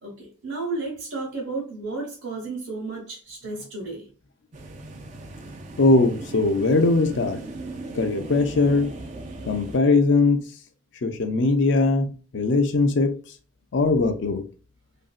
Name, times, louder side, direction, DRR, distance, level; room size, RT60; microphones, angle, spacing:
voice 1, 0.0-4.1, right 3 dB, 60° right, 0.9 m, -33 dB
sound 1, 4.5-9.8, right 2 dB, 35° right, 0.3 m, -38 dB
voice 2, 5.8-7.4 7.9-8.9 9.5-10.4 11.0-13.1 13.7-14.4, left 3 dB, 60° left, 0.4 m, -20 dB
2.9 x 2.6 x 2.3 m
head